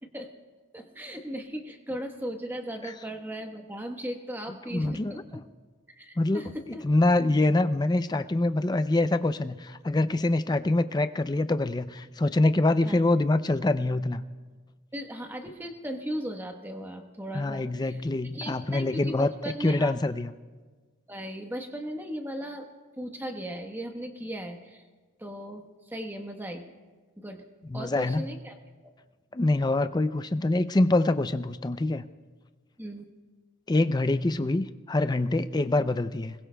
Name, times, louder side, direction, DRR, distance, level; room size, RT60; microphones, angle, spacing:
voice 1, 0.7-5.4 5.9-6.8 12.8-13.0 14.9-18.0 18.3-19.9 21.1-22.7 23.0-24.8 25.2-26.7 27.2-27.4 27.7-28.6 28.8-28.9 32.8-33.1, equal, 10° right, 4 dB, 1.1 m, -37 dB
voice 2, 4.7-5.1 6.2-6.4 6.8-14.2 17.3-19.3 19.6-20.3 27.7-28.2 29.3-32.1 33.7-36.3, left 2 dB, 20° left, 11 dB, 0.4 m, -25 dB
27.5 x 21.0 x 2.3 m, 1.4 s
head